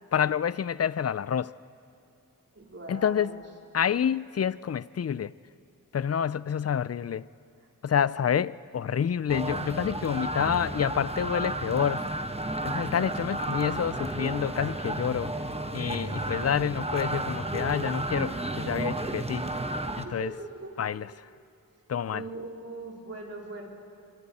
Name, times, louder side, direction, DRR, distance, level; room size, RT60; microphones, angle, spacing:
voice 1, 0.1-1.5 2.9-3.4 3.7-5.3 5.9-7.3 7.8-12.1 12.6-15.3 15.7-19.4 20.0-20.3 20.8-21.1 21.9-22.2, left 8 dB, 45° left, 0.4 m, -28 dB
voice 2, 2.5-3.4 15.9-16.3 20.0-20.7 22.1-23.7, right 2 dB, 40° right, 3.7 m, -41 dB
sound 1, 9.3-20.0, right 1 dB, 15° right, 1.2 m, -32 dB
26.0 x 24.0 x 4.2 m
wide cardioid pair, 45°, 35 cm